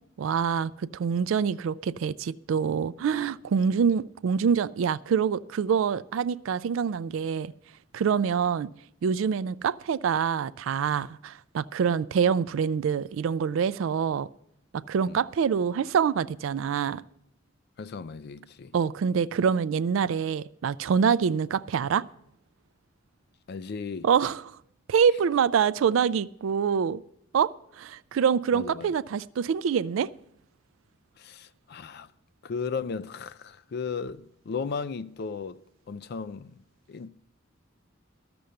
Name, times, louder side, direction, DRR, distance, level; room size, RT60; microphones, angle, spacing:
voice 1, 0.2-7.5 7.9-8.7 9.0-14.3 14.7-17.0 18.7-22.1 24.0-24.4 24.9-27.0 27.3-30.1, right 7 dB, 80° right, 0.3 m, -25 dB
voice 2, 17.8-18.7 23.5-24.1 28.5-28.9 31.2-32.1 32.4-35.6 35.9-36.6 36.9-37.1, left 5 dB, 55° left, 0.4 m, -35 dB
12.5 x 6.9 x 6.4 m
head